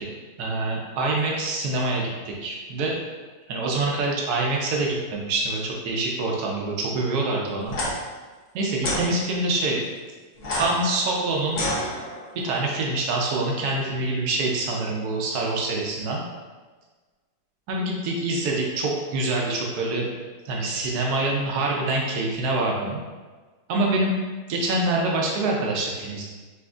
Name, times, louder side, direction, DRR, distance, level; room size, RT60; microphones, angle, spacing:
voice 1, 0.4-3.0 3.5-7.8 8.5-9.8 10.5-11.6 12.4-16.2 17.7-20.1 20.4-23.0 23.7-24.2 24.5-26.2, right 2 dB, 80° right, -2 dB, 0.8 m, -25 dB
sound 1, 7.6-7.9 8.8-9.0 10.4-12.4, left 1 dB, 55° left, 0.9 m, -29 dB
5.8 x 2.5 x 2.4 m, 1.4 s
omnidirectional pair, 2.3 m